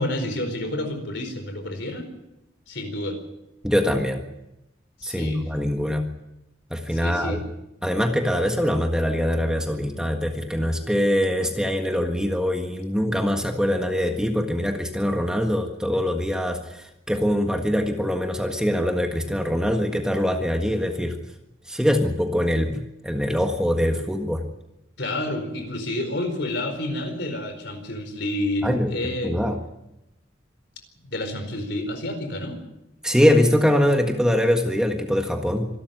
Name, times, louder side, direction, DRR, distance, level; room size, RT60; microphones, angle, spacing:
voice 1, 0.0-2.1 2.7-3.2 5.0-5.5 6.9-7.4 25.0-29.4 31.0-32.6, left 1 dB, 60° left, 7 dB, 4.6 m, -29 dB
voice 2, 3.6-4.2 5.0-6.1 6.7-7.4 7.8-21.2 21.7-24.4 28.6-28.9 29.2-29.5 33.0-35.7, equal, 5° right, 4 dB, 1.6 m, -23 dB
26.0 x 12.5 x 9.3 m, 0.90 s
head